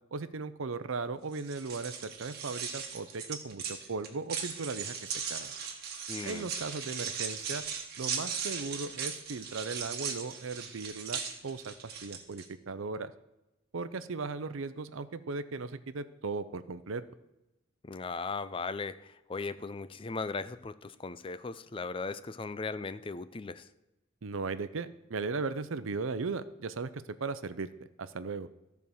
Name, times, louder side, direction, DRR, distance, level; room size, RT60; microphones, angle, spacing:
voice 1, 0.1-5.5 6.2-7.6 8.0-13.1 13.7-17.0 24.2-27.7 28.0-28.5, right 4 dB, 80° right, 13 dB, 0.6 m, -37 dB
sound 1, 1.3-12.4, right 6 dB, 50° right, 1.5 m, -38 dB
voice 2, 6.1-6.5 17.8-23.7, left 4 dB, 25° left, 14 dB, 0.4 m, -38 dB
13.5 x 4.7 x 7.0 m, 0.95 s
head